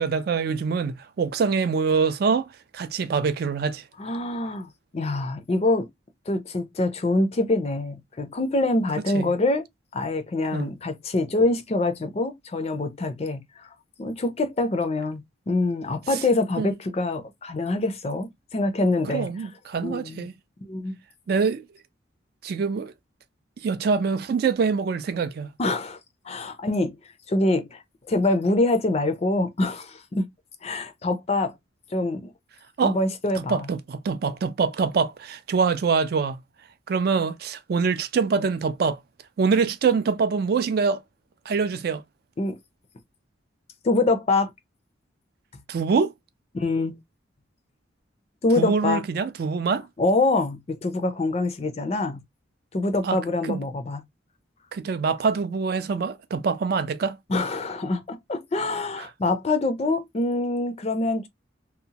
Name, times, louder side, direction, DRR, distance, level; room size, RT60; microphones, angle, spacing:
voice 1, 0.0-2.5 2.7-3.8 9.1-9.3 10.5-10.7 16.1-16.2 16.6-16.7 19.0-20.3 21.3-21.6 22.4-22.9 23.6-25.5 32.8-33.0 33.3-36.4 36.9-39.0 39.4-41.0 41.5-42.0 45.7-46.1 48.6-49.9 53.0-53.6 54.7-57.2 59.0-59.1, right 5 dB, 50° right, 0.3 m, -24 dB
voice 2, 4.0-5.9 6.3-9.6 9.9-13.7 14.0-19.5 19.8-20.3 20.6-21.0 25.6-26.0 26.3-26.9 27.3-27.8 28.1-30.3 30.6-31.5 31.9-32.3 32.8-33.7 42.4-42.5 43.8-44.5 46.5-47.0 48.4-49.0 50.0-52.2 52.7-54.0 57.3-61.3, left 2 dB, 30° left, 0.4 m, -25 dB
2.7 x 2.0 x 2.7 m
head